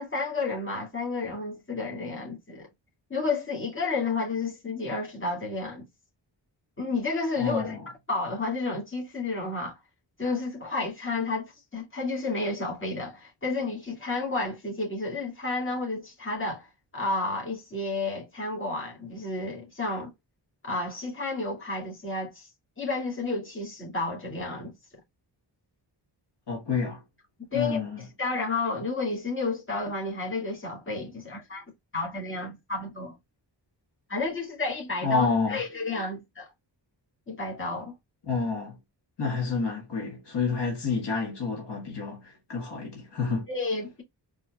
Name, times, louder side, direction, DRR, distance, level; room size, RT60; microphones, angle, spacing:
voice 1, 0.0-2.7 3.1-5.9 6.8-7.8 8.1-9.8 10.2-20.1 20.6-22.5 22.8-24.7 27.5-27.8 28.2-31.6 31.9-33.1 34.1-36.5 37.3-37.9 43.5-44.0, left 3 dB, 30° left, 2.1 m, -31 dB
voice 2, 7.4-7.8 26.5-27.0 27.5-28.0 35.0-35.6 38.2-38.8 39.2-43.5, left 4 dB, 65° left, 1.8 m, -29 dB
4.2 x 3.5 x 2.4 m
wide cardioid pair, 90°, 44 cm